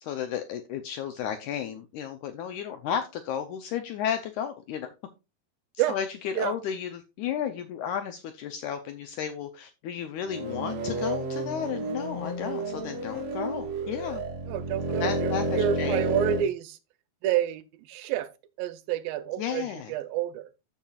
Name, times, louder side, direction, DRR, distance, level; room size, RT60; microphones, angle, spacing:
voice 1, 0.0-4.9 5.9-14.2 15.0-16.0 19.4-19.9, left 9 dB, 80° left, 1.8 m, -33 dB
sound 1, 10.2-16.5, right 2 dB, 60° right, 1.9 m, -31 dB
voice 2, 14.5-16.8 17.2-17.6 17.9-18.3 18.6-20.5, right 11 dB, 85° right, 2.4 m, -29 dB
14.0 x 5.6 x 2.4 m
omnidirectional pair, 4.2 m